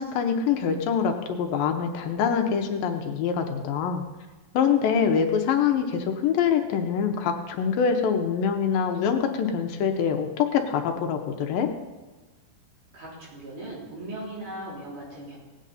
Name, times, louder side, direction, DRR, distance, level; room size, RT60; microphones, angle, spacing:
voice 1, 0.0-4.0 4.5-11.7, left 7 dB, 80° left, 5 dB, 2.6 m, -24 dB
voice 2, 12.9-15.4, right 1 dB, 60° right, -6 dB, 5.3 m, -38 dB
17.5 x 8.8 x 4.1 m, 1.2 s
omnidirectional pair, 4.1 m